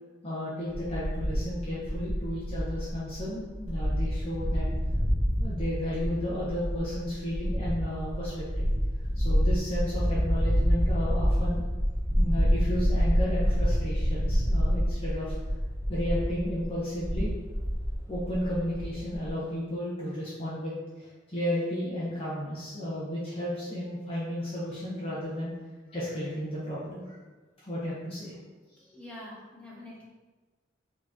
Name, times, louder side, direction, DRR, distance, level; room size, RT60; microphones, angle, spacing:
voice 1, 0.2-4.7 5.4-8.7 9.1-11.6 12.1-15.3 15.9-17.3 18.1-25.5 25.9-27.2 27.7-28.4 28.9-29.0, equal, 30° left, -8 dB, 0.9 m, -33 dB
sound 1, 0.7-19.3, equal, 15° right, 0.8 m, -28 dB
voice 2, 28.9-30.0, left 1 dB, 5° left, -7 dB, 1.3 m, -45 dB
4.8 x 3.1 x 3.6 m, 1.3 s
head